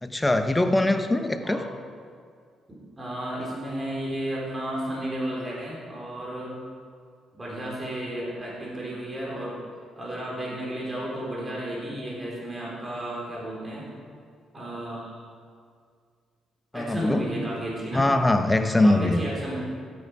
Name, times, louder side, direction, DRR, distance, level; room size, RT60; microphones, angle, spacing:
voice 1, 0.0-1.6 16.7-17.2 17.9-19.2, left 2 dB, 15° left, 7 dB, 0.8 m, -22 dB
voice 2, 2.7-6.5 7.3-9.6 10.0-13.9 14.5-15.2 16.7-18.1 18.8-19.6, right 1 dB, 25° right, -5 dB, 4.0 m, -33 dB
15.0 x 9.5 x 4.8 m, 2.1 s
cardioid pair, 90°, 0 cm